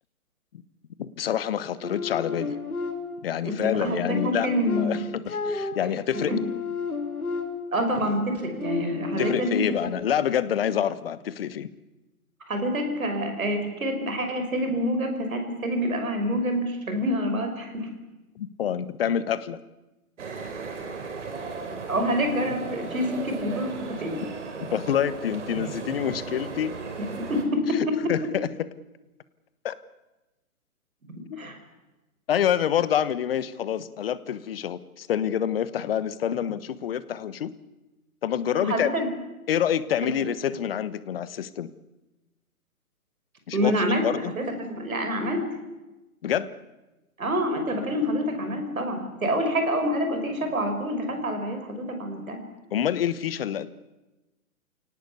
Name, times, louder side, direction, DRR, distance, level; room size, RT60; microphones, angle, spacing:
voice 1, 1.0-2.6 3.2-4.5 4.8-6.3 9.2-11.7 18.4-19.6 24.7-26.7 28.1-28.5 29.6-29.8 31.3-31.5 32.3-37.5 38.2-38.9 39.5-41.7 43.5-43.7 44.0-44.3 46.2-46.5 52.7-53.7, left 9 dB, 40° left, 16 dB, 1.3 m, -27 dB
sound 1, 1.8-3.3 3.9-7.9 8.4-9.9, left 4 dB, 75° left, 3.4 m, -32 dB
voice 2, 3.4-5.0 6.3-6.4 7.7-9.7 12.5-17.9 21.9-23.7 24.0-24.2 27.0-28.3 31.4-31.6 38.6-39.1 40.0-40.1 43.5-44.0 44.4-45.4 47.2-52.4, equal, 70° right, 6 dB, 5.9 m, -27 dB
sound 2, 20.2-27.4, right 4 dB, 55° right, 4.4 m, -36 dB
28.5 x 18.0 x 8.4 m, 1.1 s
figure-of-eight pair, 130°, 44 cm